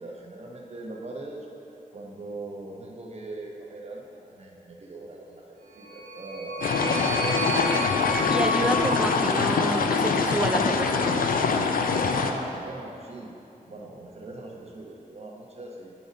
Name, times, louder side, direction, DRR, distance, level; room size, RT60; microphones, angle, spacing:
voice 1, 0.0-1.5 1.9-7.3 8.5-9.1 9.3-9.5 11.7-13.3 13.6-15.9, right 2 dB, 45° right, 0 dB, 0.8 m, -41 dB
sound 1, 5.8-10.1, left 1 dB, 65° right, 1.1 m, -31 dB
sound 2, 6.6-12.3, left 4 dB, 80° left, 0.4 m, -24 dB
voice 2, 8.3-11.2, right 1 dB, 5° right, 6 dB, 0.3 m, -29 dB
8.4 x 4.0 x 5.1 m, 2.8 s
wide cardioid pair, 165°, 15 cm